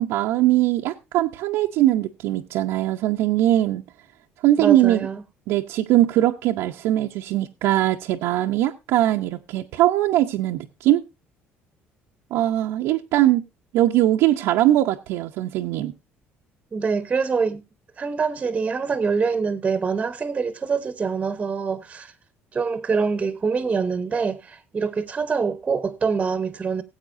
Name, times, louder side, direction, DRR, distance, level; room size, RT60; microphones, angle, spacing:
voice 1, 0.0-3.8 4.4-5.1 5.5-11.0 12.3-13.4 13.7-15.9, right 14 dB, 85° right, 0.7 m, -21 dB
voice 2, 4.6-5.2 16.7-17.6 18.0-22.1 22.5-26.8, right 5 dB, 25° right, 0.9 m, -25 dB
19.0 x 8.2 x 2.6 m
cardioid pair, 135°, 5 cm